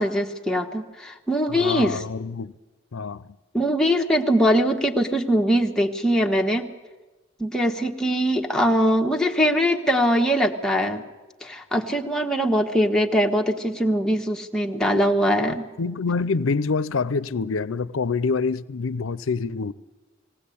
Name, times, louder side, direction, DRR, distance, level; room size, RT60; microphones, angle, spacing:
voice 1, 0.0-2.0 3.5-6.7 7.4-11.0 11.4-15.7, equal, 5° left, 1.2 m, -22 dB
voice 2, 1.5-2.5 2.9-3.2 15.5-19.7, left 4 dB, 80° left, 0.6 m, -26 dB
19.5 x 17.5 x 8.5 m
head